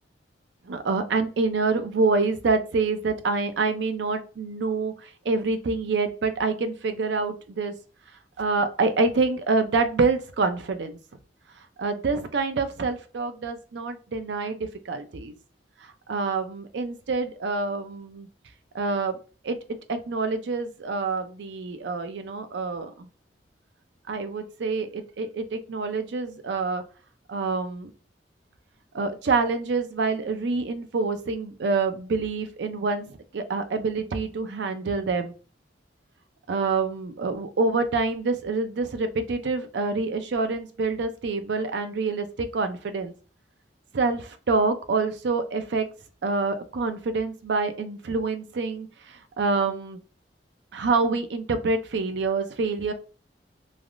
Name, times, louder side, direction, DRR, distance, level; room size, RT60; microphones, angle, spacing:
voice 1, 0.7-4.9 5.3-7.7 8.4-11.0 11.8-15.3 16.1-18.3 18.7-19.2 19.4-19.6 19.9-23.1 24.1-26.8 27.3-27.9 28.9-33.1 33.3-35.3 36.5-43.1 43.9-45.9 46.2-48.9 49.4-50.0 50.7-52.9, right 3 dB, 70° right, 9 dB, 0.5 m, -26 dB
3.3 x 2.3 x 2.4 m, 0.36 s
head